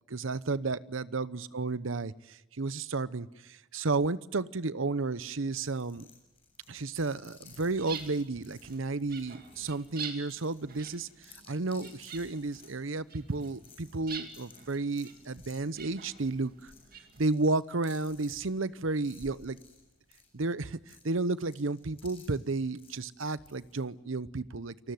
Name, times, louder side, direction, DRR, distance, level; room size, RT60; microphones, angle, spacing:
voice 1, 0.1-6.1 6.7-16.7 17.2-19.6 20.3-24.9, right 3 dB, 75° right, 17 dB, 0.8 m, -32 dB
sound 1, 5.5-23.8, left 4 dB, 30° left, 7.6 m, -58 dB
sound 2, 7.4-17.2, right 6 dB, 45° right, 2.6 m, -47 dB
29.0 x 20.0 x 9.4 m, 0.99 s
head